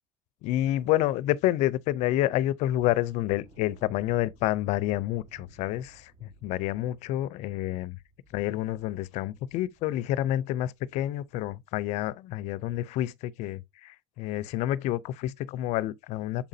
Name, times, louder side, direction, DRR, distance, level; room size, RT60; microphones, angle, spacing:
voice 1, 0.4-8.0 8.3-16.5, left 14 dB, 65° left, 0.5 m, -29 dB
sound 1, 2.8-10.5 10.8-11.0 11.4-11.5, right 2 dB, 45° right, 4.3 m, -58 dB
7.1 x 4.9 x 2.7 m
supercardioid pair, 105°, 13 cm